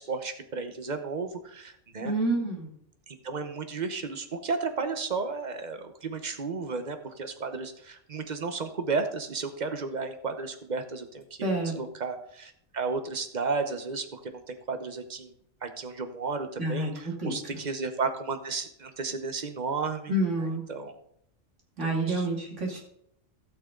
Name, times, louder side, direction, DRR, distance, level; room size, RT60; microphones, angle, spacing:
voice 1, 0.0-2.1 3.1-11.5 11.8-15.3 15.6-20.1 20.4-20.9 22.1-22.3, right 4 dB, 40° right, 8 dB, 1.0 m, -33 dB
voice 2, 2.0-2.7 11.4-11.7 16.6-17.6 20.1-20.6 21.8-22.8, right 1 dB, 70° right, -1 dB, 2.8 m, -28 dB
15.5 x 6.4 x 3.7 m, 0.71 s
omnidirectional pair, 1.3 m